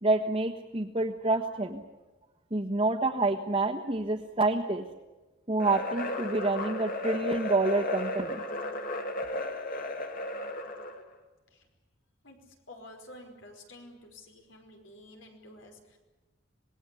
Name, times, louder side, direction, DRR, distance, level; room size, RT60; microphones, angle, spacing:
voice 1, 0.0-1.8 2.5-4.8 5.5-8.4, right 2 dB, 30° right, -2 dB, 1.5 m, -28 dB
sound 1, 5.6-11.0, left 1 dB, 45° left, 2.4 m, -34 dB
voice 2, 12.7-16.0, left 1 dB, 85° left, 4 dB, 5.1 m, -50 dB
26.5 x 20.5 x 8.5 m, 1.1 s
head